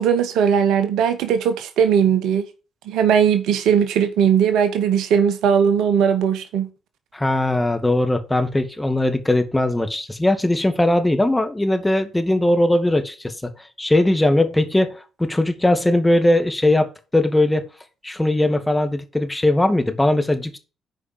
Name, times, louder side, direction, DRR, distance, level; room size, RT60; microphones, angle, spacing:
voice 1, 0.0-2.4 2.9-6.7, right 7 dB, 65° right, 11 dB, 1.0 m, -18 dB
voice 2, 7.1-13.5 13.8-14.9 15.2-17.7 18.0-20.6, left 1 dB, 15° left, 7 dB, 2.0 m, -19 dB
9.0 x 5.0 x 6.8 m, 0.33 s
figure-of-eight pair, 45°, 0 cm